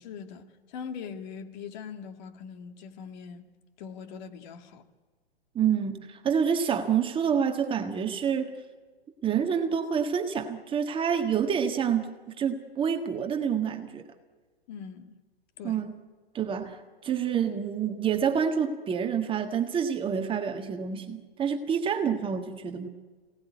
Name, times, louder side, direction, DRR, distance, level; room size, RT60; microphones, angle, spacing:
voice 1, 0.0-3.4 3.8-4.8 14.7-15.2 15.6-15.8, left 6 dB, 45° left, 2.2 m, -41 dB
voice 2, 5.5-8.5 9.2-14.0 15.6-15.9 16.3-22.9, right 7 dB, 15° right, 1.6 m, -28 dB
27.0 x 18.5 x 9.4 m
hypercardioid pair, 130°, 31 cm